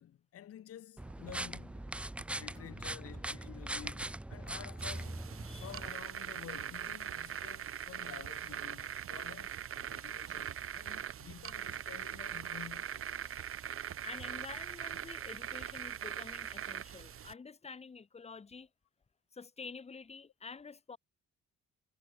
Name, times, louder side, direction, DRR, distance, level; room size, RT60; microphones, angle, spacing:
voice 1, 0.0-1.9 2.4-5.3 5.6-13.4, left 11 dB, 50° left, 0.8 m, -51 dB
sound 1, 1.0-5.9, right 1 dB, 5° right, 0.3 m, -41 dB
sound 2, 1.0-3.5 3.8-7.7 8.2-11.9 12.1-15.1 15.6-15.7, right 10 dB, 60° right, 2.1 m, -56 dB
sound 3, 4.8-17.3, right 9 dB, 45° right, 0.9 m, -41 dB
voice 2, 13.8-18.7 19.3-21.0, left 5 dB, 20° left, 0.8 m, -49 dB
cardioid pair, 90°, 30 cm